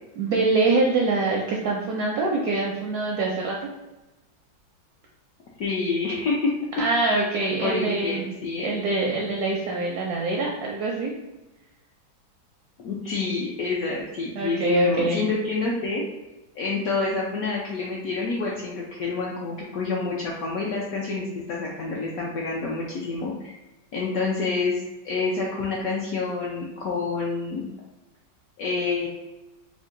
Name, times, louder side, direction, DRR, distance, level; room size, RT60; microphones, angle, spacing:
voice 1, 0.2-3.6 6.8-8.3 8.6-11.1 14.4-15.2, right 2 dB, 75° right, -1 dB, 0.9 m, -24 dB
voice 2, 5.6-6.5 7.6-8.7 12.8-16.0 16.6-23.5 23.9-24.8 25.0-27.7 28.6-29.1, left 4 dB, 75° left, -3 dB, 0.8 m, -28 dB
3.7 x 2.1 x 3.7 m, 1.0 s
omnidirectional pair, 2.1 m